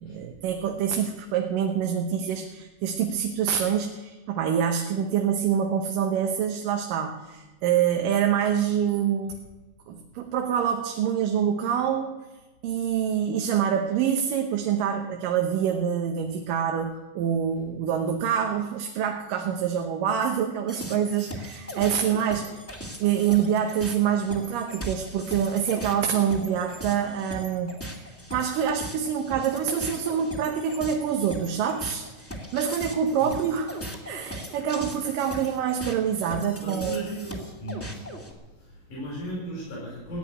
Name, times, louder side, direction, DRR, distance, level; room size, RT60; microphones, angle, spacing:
voice 1, 0.0-9.4 9.9-12.2 12.6-22.6 23.0-32.1 32.5-33.7 34.1-37.0, right 8 dB, 85° right, 3 dB, 2.6 m, -26 dB
sound 1, 20.7-38.3, equal, 5° left, 1.5 m, -38 dB
voice 2, 36.6-38.3 38.6-40.2, right 1 dB, 75° left, -7 dB, 8.0 m, -36 dB
16.0 x 8.7 x 10.0 m, 1.1 s
omnidirectional pair, 3.8 m